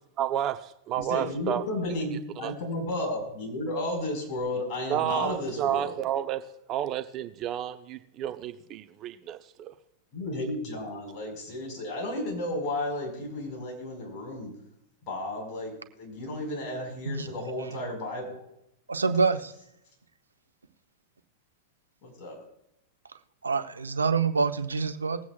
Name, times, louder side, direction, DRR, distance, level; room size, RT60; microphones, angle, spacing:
voice 1, 0.2-1.6 2.4-2.5 4.9-6.4 6.7-9.7, right 11 dB, 35° right, 8 dB, 0.7 m, -31 dB
voice 2, 1.0-5.9 10.1-14.5 15.0-18.5 22.0-22.4, left 1 dB, 40° left, 0 dB, 4.9 m, -33 dB
voice 3, 18.9-19.5 23.4-25.2, right 4 dB, 85° right, 8 dB, 0.8 m, -26 dB
20.5 x 8.3 x 2.4 m, 0.81 s
figure-of-eight pair, 95°, 0 cm